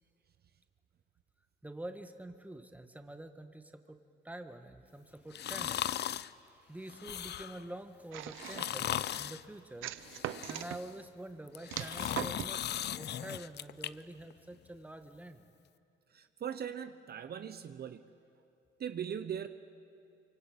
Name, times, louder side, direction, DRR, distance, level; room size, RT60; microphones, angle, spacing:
voice 1, 1.6-4.0 4.2-9.9 10.5-12.6 12.9-15.5, right 1 dB, 5° right, 7 dB, 1.7 m, -47 dB
sound 1, 5.3-6.3 6.9-7.7 8.4-9.4 10.0-10.9 11.5-13.9 14.3-14.4, left 11 dB, 60° left, 0.6 m, -38 dB
sound 2, 8.1-8.9 9.8-10.8 11.7-12.6, right 13 dB, 90° right, 0.8 m, -40 dB
voice 2, 16.1-18.1 18.8-19.5, right 8 dB, 55° right, 9 dB, 1.0 m, -40 dB
24.5 x 24.0 x 8.7 m, 2.6 s
cardioid pair, 90°, 20 cm